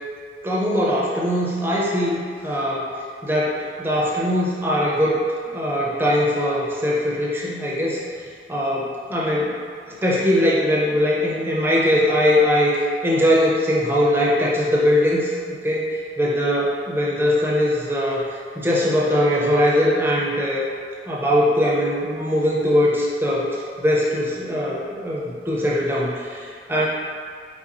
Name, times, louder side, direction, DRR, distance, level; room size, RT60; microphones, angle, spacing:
voice 1, 0.4-2.9 3.2-8.2 8.5-9.6 9.9-20.7 21.1-26.9, equal, 15° right, -5 dB, 0.5 m, -21 dB
4.1 x 3.1 x 2.5 m, 2.2 s
head